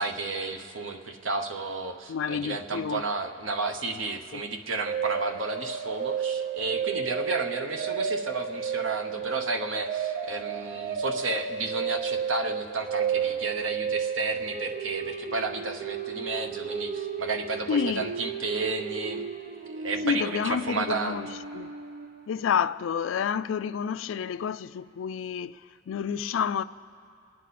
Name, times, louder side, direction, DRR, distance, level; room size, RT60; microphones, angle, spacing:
voice 1, 0.0-19.2 19.7-21.2, right 3 dB, 75° right, 1.0 m, -32 dB
voice 2, 2.1-3.0 4.3-4.4 17.7-18.1 20.0-21.3 21.5-21.7 22.3-25.6 25.9-26.6, left 7 dB, 75° left, 0.3 m, -29 dB
sound 1, 4.9-22.3, right 6 dB, 45° right, 0.7 m, -33 dB
27.0 x 9.8 x 4.2 m
head